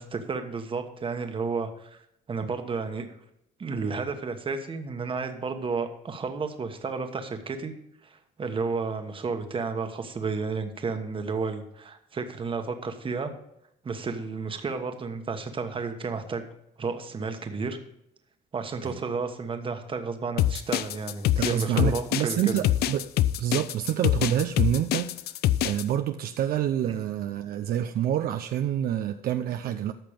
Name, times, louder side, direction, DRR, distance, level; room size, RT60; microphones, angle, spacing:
voice 1, 0.0-2.0 2.3-3.1 3.6-7.7 8.0-13.3 13.8-16.4 16.8-17.8 18.5-22.5 26.8-26.9, right 4 dB, 30° right, 6 dB, 1.3 m, -32 dB
sound 1, 20.4-25.8, left 13 dB, 70° left, 0.5 m, -24 dB
voice 2, 21.4-23.1 23.4-25.4 25.6-29.9, right 10 dB, 60° right, 8 dB, 0.6 m, -27 dB
13.5 x 5.9 x 5.1 m, 0.79 s
cardioid pair, 110°, 17 cm